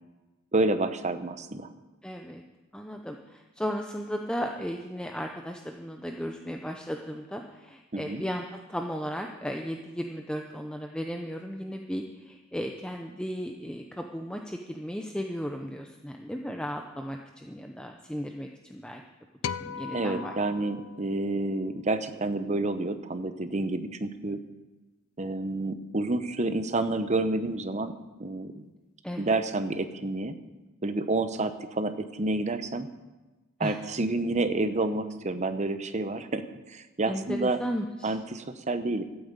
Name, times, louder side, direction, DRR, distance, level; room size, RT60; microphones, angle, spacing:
voice 1, 0.5-1.7 7.9-8.2 19.9-24.4 25.2-27.9 28.2-28.6 29.2-30.4 30.8-32.9 33.6-37.6 38.0-39.0, right 2 dB, 35° right, 10 dB, 0.8 m, -29 dB
voice 2, 2.0-2.4 2.7-19.0 19.6-20.3 29.0-29.3 33.6-33.8 37.1-38.2, equal, 5° left, 3 dB, 0.7 m, -35 dB
sound 1, 19.4-21.9, left 6 dB, 80° left, 0.5 m, -39 dB
13.5 x 8.9 x 8.3 m, 1.1 s
head